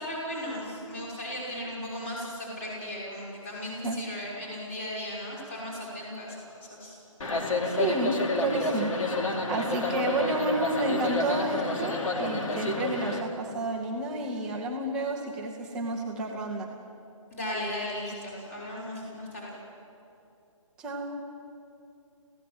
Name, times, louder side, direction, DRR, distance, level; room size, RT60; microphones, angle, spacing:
voice 1, 0.0-6.4 6.7-7.0 17.3-19.5, left 1 dB, 25° left, -3 dB, 5.8 m, -36 dB
sound 1, 7.2-13.2, left 2 dB, 75° left, 2.9 m, -29 dB
voice 2, 7.6-8.9 9.2-16.7 20.8-21.2, right 2 dB, 5° right, -2 dB, 0.7 m, -30 dB
29.5 x 16.0 x 7.9 m, 2.7 s
hypercardioid pair, 180°, 17 cm